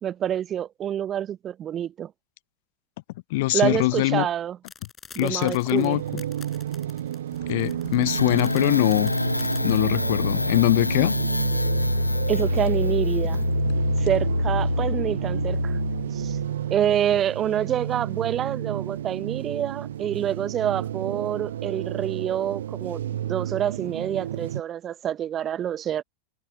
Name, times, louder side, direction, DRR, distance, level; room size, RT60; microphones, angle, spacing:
voice 1, 0.0-2.1 3.5-4.6 5.1-6.0 12.3-13.4 14.0-15.8 16.1-16.4 16.7-26.0, right 10 dB, 25° right, 1.1 m, -27 dB
voice 2, 3.3-4.3 5.2-6.2 7.5-9.1 9.6-11.1, left 20 dB, 50° left, 0.3 m, -22 dB
sound 1, 4.6-9.8, left 6 dB, 20° left, 6.0 m, -47 dB
sound 2, 5.7-24.6, right 11 dB, 60° right, 0.5 m, -31 dB
sound 3, 8.1-16.5, left 2 dB, 85° left, 1.6 m, -26 dB
figure-of-eight pair, 90°, 0 cm